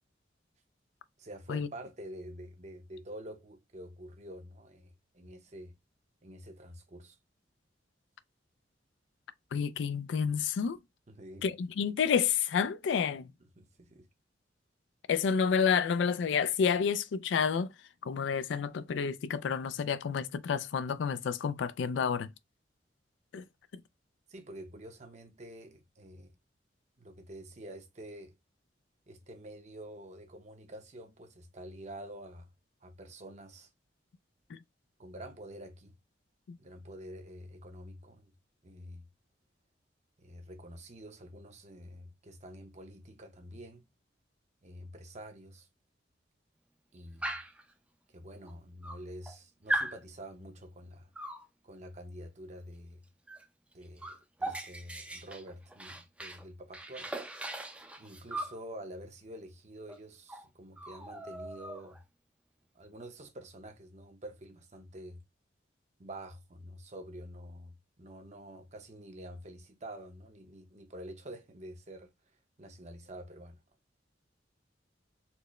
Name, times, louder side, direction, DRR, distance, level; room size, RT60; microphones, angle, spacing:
voice 1, 1.2-5.7 6.2-7.2 11.1-11.5 13.4-14.1 24.3-26.3 27.0-28.3 29.1-32.5 32.8-33.7 35.0-36.0 36.6-38.3 38.6-39.0 40.2-43.9 44.6-45.7 46.9-47.3 48.1-51.1 51.6-53.0 53.7-57.6 58.0-62.0 62.7-65.2 66.0-73.6, right 1 dB, 40° right, 0.7 m, -48 dB
voice 2, 9.5-10.8 11.4-13.3 15.1-17.7 18.0-22.3 23.3-23.4 34.5-34.6 36.5-36.6, left 6 dB, 80° left, 0.3 m, -29 dB
Dog, 47.2-47.6 48.5-48.6 48.8-49.4 49.7-50.0 51.2-51.5 53.3-53.4 53.7-56.4 56.7-58.6 59.9-60.0 60.3-60.5 60.8-62.0, right 1 dB, 5° right, 0.4 m, -38 dB
4.3 x 2.1 x 3.0 m
head